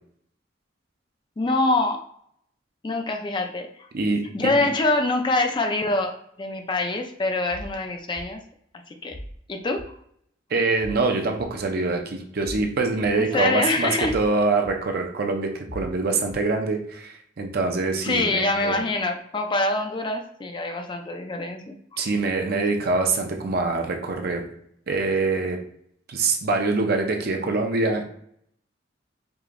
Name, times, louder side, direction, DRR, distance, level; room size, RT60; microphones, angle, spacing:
voice 1, 1.4-2.0 2.8-3.9 4.3-8.4 8.9-9.1 9.5-10.0 13.2-14.1 18.0-21.8, left 2 dB, 25° left, 4 dB, 0.4 m, -25 dB
voice 2, 3.9-4.5 10.5-18.8 22.0-24.5 24.9-25.6 26.1-28.0, right 3 dB, 55° right, 3 dB, 0.6 m, -24 dB
sound 1, 7.5-7.7 8.2-8.3 9.1-9.4 9.8-9.9 10.8-11.0 11.4-11.5 12.4-12.6 13.0-13.1 14.0-14.3 14.6-14.7 15.7-15.9 16.3-16.4, equal, 55° left, 1.1 m, -38 dB
4.9 x 2.7 x 2.5 m, 0.67 s
head